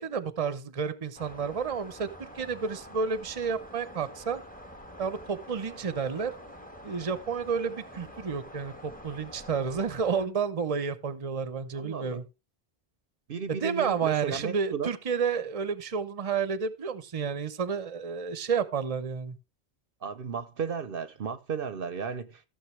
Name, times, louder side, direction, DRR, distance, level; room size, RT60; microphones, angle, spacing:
voice 1, 0.0-2.1 2.3-4.4 5.0-6.3 6.8-12.2 13.5-19.4, right 6 dB, 35° right, 0.8 m, -30 dB
sound 1, 1.2-10.3, equal, 10° left, 1.4 m, -47 dB
voice 2, 11.7-12.2 13.3-14.9 20.0-22.4, right 6 dB, 60° right, 0.9 m, -34 dB
15.0 x 7.1 x 3.2 m
omnidirectional pair, 1.1 m